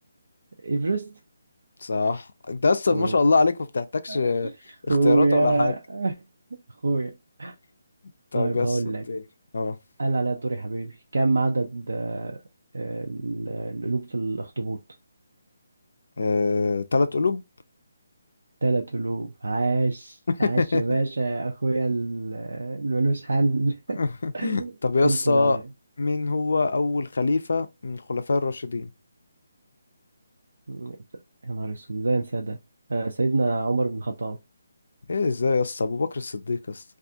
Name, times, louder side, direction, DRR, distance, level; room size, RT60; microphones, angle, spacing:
voice 1, 0.6-1.2 2.9-3.2 4.1-4.2 4.9-6.1 6.8-7.1 7.4-7.5 8.3-9.0 10.0-12.4 12.7-14.8 18.6-24.0 24.3-24.7 25.0-25.6 30.7-31.0 31.4-32.6 32.9-34.4, right 3 dB, 75° right, 0.4 m, -26 dB
voice 2, 1.8-4.5 4.8-5.7 8.3-8.8 9.1-9.2 9.5-9.8 16.2-17.4 20.4-20.8 24.0-25.6 26.0-28.9 35.1-36.8, left 3 dB, 70° left, 0.4 m, -24 dB
2.4 x 2.4 x 2.7 m
figure-of-eight pair, 150°, 0 cm